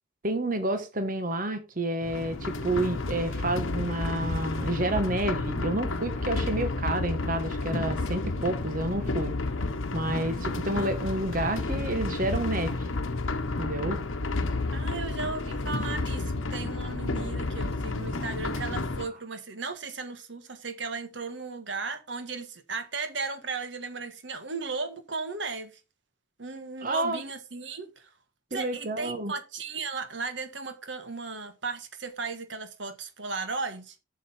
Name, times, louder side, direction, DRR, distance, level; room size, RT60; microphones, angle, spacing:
voice 1, 0.2-9.3 9.9-12.7 13.6-14.0 26.8-27.2 28.5-29.3, right 1 dB, 45° right, 1.1 m, -29 dB
sound 1, 2.0-19.1, left 2 dB, 85° left, 1.0 m, -31 dB
voice 2, 14.7-25.8 26.4-28.1 28.5-33.9, right 4 dB, 65° right, 1.5 m, -36 dB
7.8 x 6.5 x 4.3 m
head